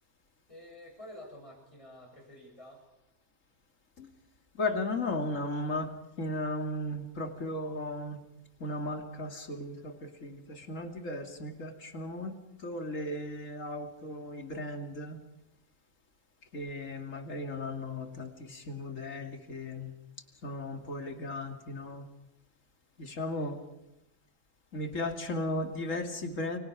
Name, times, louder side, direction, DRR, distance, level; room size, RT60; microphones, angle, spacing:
voice 1, 0.5-2.8 23.3-23.5, left 1 dB, 25° left, 2 dB, 8.0 m, -49 dB
voice 2, 4.5-8.2 8.6-15.2 16.5-19.9 20.4-22.1 23.0-23.6 24.7-26.6, left 2 dB, 85° left, 5 dB, 2.9 m, -36 dB
30.0 x 24.0 x 4.9 m, 0.91 s
omnidirectional pair, 1.3 m